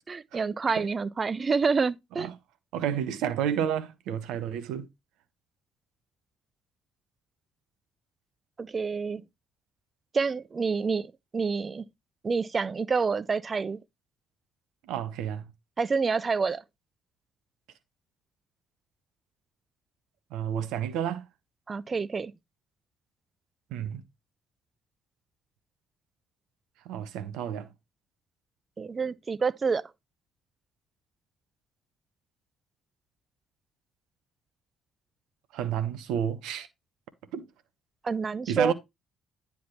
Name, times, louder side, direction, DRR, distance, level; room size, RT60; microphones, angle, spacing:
voice 1, 0.1-2.3 8.6-9.2 10.1-11.8 12.2-13.8 15.8-16.6 21.7-22.3 28.8-29.8 38.0-38.7, right 5 dB, 35° right, 0.5 m, -28 dB
voice 2, 2.7-4.9 14.8-15.5 20.3-21.3 23.7-24.0 26.8-27.7 35.5-36.7 37.3-37.5 38.5-38.7, right 9 dB, 65° right, 0.8 m, -30 dB
9.5 x 3.5 x 4.3 m
figure-of-eight pair, 50°, 0 cm